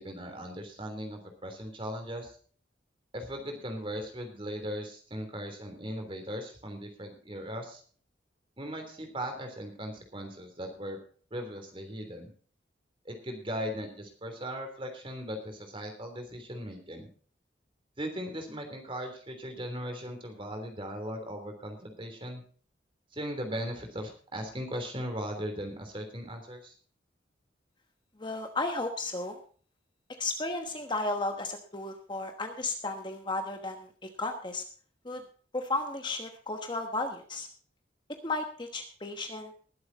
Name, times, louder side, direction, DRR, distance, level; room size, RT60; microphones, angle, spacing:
voice 1, 0.0-2.3 3.1-7.8 8.6-11.0 11.3-12.3 13.0-17.1 18.0-22.4 23.1-26.7, equal, 30° right, 5 dB, 3.3 m, -38 dB
voice 2, 28.2-29.4 30.2-34.6 35.0-35.2 35.5-37.5 38.2-39.5, left 2 dB, 25° left, 5 dB, 1.2 m, -34 dB
20.0 x 8.0 x 4.1 m, 0.43 s
head